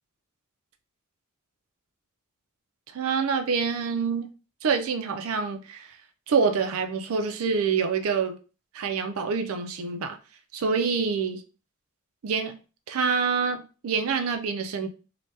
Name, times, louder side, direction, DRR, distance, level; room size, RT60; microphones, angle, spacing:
voice 1, 2.9-4.3 4.6-6.0 6.3-8.4 8.7-10.2 10.5-11.4 12.2-12.6 12.9-14.9, right 5 dB, 70° right, 0.4 m, -26 dB
2.8 x 2.2 x 3.1 m
head